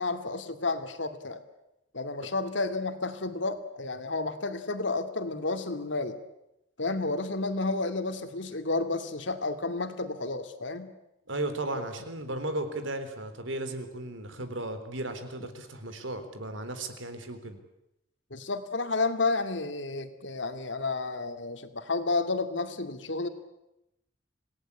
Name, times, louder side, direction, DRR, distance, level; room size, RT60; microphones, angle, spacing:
voice 1, 0.0-1.4 1.9-6.2 6.8-10.9 18.3-23.3, left 3 dB, 70° left, 8 dB, 2.4 m, -31 dB
voice 2, 11.3-17.6, right 2 dB, 85° right, 9 dB, 3.9 m, -35 dB
27.0 x 18.0 x 9.9 m, 0.88 s
head